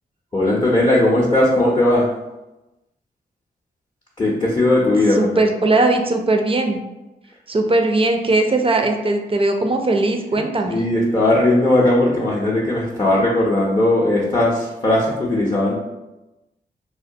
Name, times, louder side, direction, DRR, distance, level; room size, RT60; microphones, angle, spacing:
voice 1, 0.3-2.1 4.2-5.4 10.7-15.8, left 1 dB, 25° left, -5 dB, 0.6 m, -18 dB
voice 2, 5.2-6.8 7.5-10.8, right 2 dB, 30° right, 4 dB, 0.4 m, -19 dB
2.2 x 2.2 x 2.6 m, 1.0 s
supercardioid pair, 40°, 20 cm